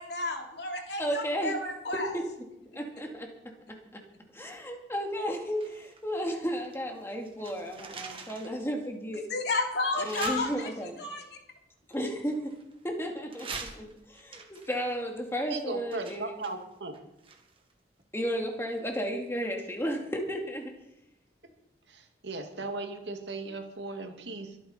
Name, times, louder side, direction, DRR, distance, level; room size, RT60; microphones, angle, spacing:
voice 1, 0.0-2.2 9.3-10.7 11.0-11.3, left 3 dB, 65° left, 2 dB, 2.9 m, -32 dB
voice 2, 1.0-1.5 1.9-2.2 2.7-3.3 4.3-9.2 10.0-10.9 11.9-12.5 12.8-16.4 18.1-20.7, equal, 15° left, 2 dB, 2.3 m, -33 dB
sound 1, 5.5-6.8 7.1-8.6 9.1-9.2 10.0-11.0 11.9-12.9 13.3-17.7 18.0-18.1, right 4 dB, 30° right, 1.8 m, -44 dB
voice 3, 15.5-17.1 21.9-24.6, right 3 dB, 75° right, 4 dB, 2.2 m, -37 dB
23.0 x 9.6 x 4.5 m, 0.85 s
head